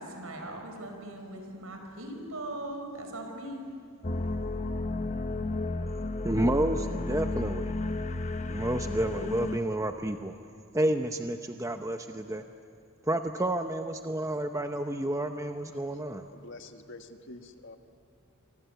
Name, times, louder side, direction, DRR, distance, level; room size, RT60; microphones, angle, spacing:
voice 1, 0.0-3.8, right 1 dB, 75° right, 4 dB, 5.3 m, -40 dB
sound 1, 4.0-9.6, left 2 dB, 35° left, 0.9 m, -32 dB
voice 2, 6.2-7.7 8.5-10.3 10.7-12.4 13.0-16.3, right 1 dB, 15° right, 6 dB, 0.7 m, -30 dB
voice 3, 16.3-17.8, left 2 dB, 55° left, 6 dB, 1.7 m, -47 dB
29.5 x 25.0 x 8.1 m, 2.4 s
head